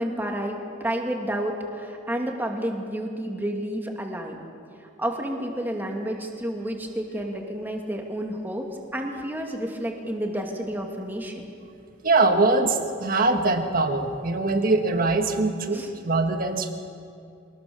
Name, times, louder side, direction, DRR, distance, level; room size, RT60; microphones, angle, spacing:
voice 1, 0.0-4.4 5.0-8.6 8.9-11.4 15.7-15.9, right 1 dB, 10° right, 1 dB, 2.3 m, -30 dB
voice 2, 12.0-16.7, right 3 dB, 45° right, 5 dB, 1.7 m, -22 dB
24.0 x 19.5 x 7.0 m, 2.4 s
head